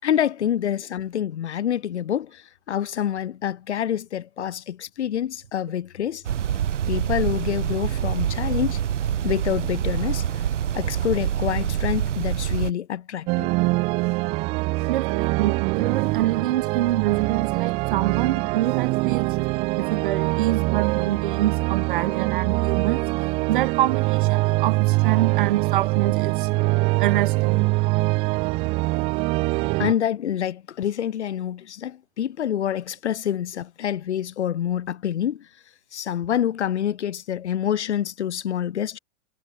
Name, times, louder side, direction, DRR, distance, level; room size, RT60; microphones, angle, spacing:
voice 1, 0.0-6.2 6.9-8.8 9.2-10.3 10.7-13.5 29.8-35.5 35.9-39.0, left 10 dB, 60° left, 5.8 m, -27 dB
sound 1, 6.3-12.7, right 10 dB, 70° right, 2.9 m, -26 dB
sound 2, 13.3-29.9, right 24 dB, 15° right, 1.0 m, -23 dB
voice 2, 14.9-19.5 19.7-23.0 23.5-26.5 27.0-27.7, right 14 dB, 40° right, 4.6 m, -26 dB
hypercardioid pair, 175°, 38 cm